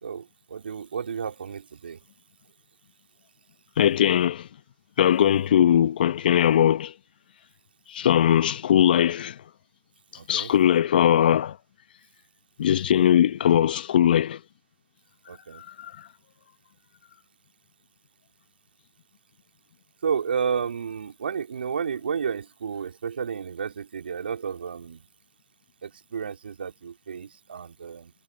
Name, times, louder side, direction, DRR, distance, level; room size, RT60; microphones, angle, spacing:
voice 1, 0.0-2.0 10.2-10.5 15.3-15.6 20.0-25.0 25.8-28.1, right 6 dB, 70° right, 4.0 m, -31 dB
voice 2, 3.8-4.5 5.0-6.9 7.9-9.4 10.3-11.6 12.6-14.4 15.6-15.9, left 10 dB, 60° left, 1.4 m, -20 dB
hypercardioid pair, 130°, 6 cm